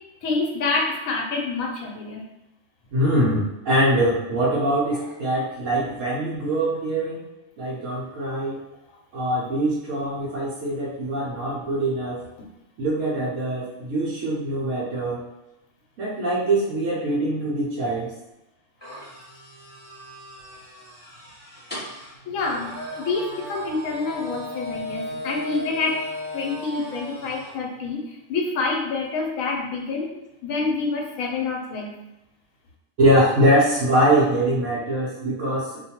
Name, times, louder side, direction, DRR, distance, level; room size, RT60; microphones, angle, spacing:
voice 1, 0.2-2.2 4.9-5.0 22.3-26.0 26.3-30.1 30.4-31.9, left 3 dB, 75° left, 0 dB, 1.0 m, -27 dB
voice 2, 2.9-7.2 7.6-8.6 9.1-12.2 12.8-15.2 16.0-18.1 33.0-35.8, right 1 dB, 70° right, -6 dB, 1.0 m, -23 dB
sound 1, 18.8-27.5, left 1 dB, 10° left, 0.9 m, -36 dB
2.6 x 2.2 x 2.8 m, 0.93 s
omnidirectional pair, 1.4 m